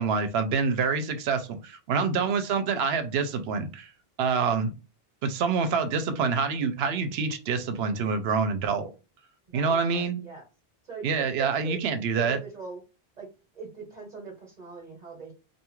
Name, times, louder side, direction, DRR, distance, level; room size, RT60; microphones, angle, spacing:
voice 1, 0.0-3.9 4.2-4.7 5.2-8.9 9.5-10.2 11.0-12.4, right 5 dB, 80° right, 0.8 m, -26 dB
voice 2, 1.9-2.3 9.5-10.4 10.8-11.8 12.1-12.8 13.2-13.3 13.5-15.3, right 5 dB, 45° right, 1.0 m, -41 dB
2.6 x 2.3 x 3.0 m
omnidirectional pair, 1.0 m